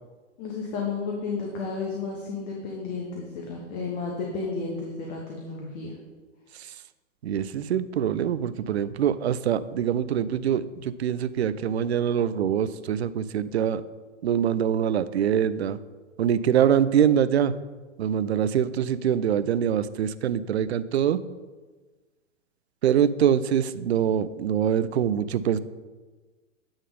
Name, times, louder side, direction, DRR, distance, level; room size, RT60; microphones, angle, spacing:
voice 1, 0.4-5.9, left 4 dB, 35° left, -1 dB, 1.1 m, -32 dB
voice 2, 7.2-13.8 14.2-15.8 16.2-17.5 18.0-21.2 22.8-25.6, right 9 dB, 60° right, 14 dB, 0.5 m, -24 dB
8.8 x 3.6 x 5.3 m, 1.3 s
figure-of-eight pair, 110°, 38 cm